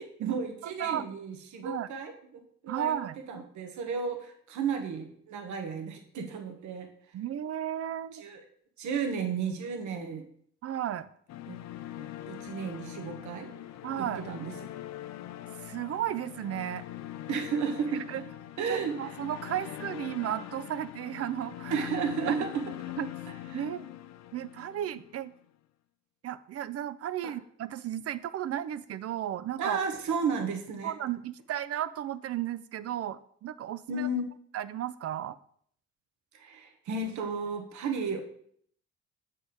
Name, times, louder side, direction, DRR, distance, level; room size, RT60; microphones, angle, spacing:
voice 1, 0.0-2.9 3.3-6.9 8.1-8.4 8.8-10.2 11.5-11.6 12.3-13.5 14.0-14.5 17.3-18.0 18.6-19.2 21.7-22.6 23.5-23.7 27.2-27.3 29.6-30.9 33.9-34.2 36.3-38.2, right 5 dB, 70° right, 4 dB, 1.1 m, -33 dB
voice 2, 2.7-3.2 7.1-8.2 10.6-11.1 13.8-14.3 15.6-16.8 18.1-18.2 18.7-21.9 22.3-22.5 23.0-23.1 23.5-23.9 24.3-25.3 26.2-29.8 30.8-34.1 34.5-35.4, right 11 dB, 55° right, 15 dB, 0.5 m, -34 dB
sound 1, 11.3-25.4, left 13 dB, 65° left, 0.5 m, -42 dB
6.8 x 4.2 x 5.2 m, 0.63 s
cardioid pair, 90°, 30 cm